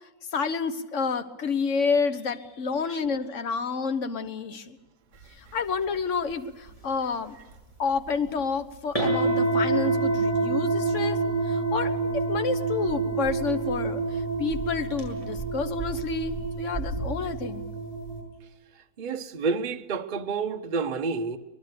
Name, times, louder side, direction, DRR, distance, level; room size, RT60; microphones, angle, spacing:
voice 1, 0.3-4.8 5.4-7.4 7.8-11.2 11.4-17.7, left 5 dB, 45° left, 1.4 m, -29 dB
sound 1, 6.3-6.4 6.7-6.8 7.9-8.0 8.3-8.4 8.9-18.2, right 3 dB, 20° left, 7.0 m, -27 dB
voice 2, 19.0-21.4, right 4 dB, 35° right, 0.9 m, -29 dB
24.5 x 19.5 x 6.8 m
omnidirectional pair, 2.0 m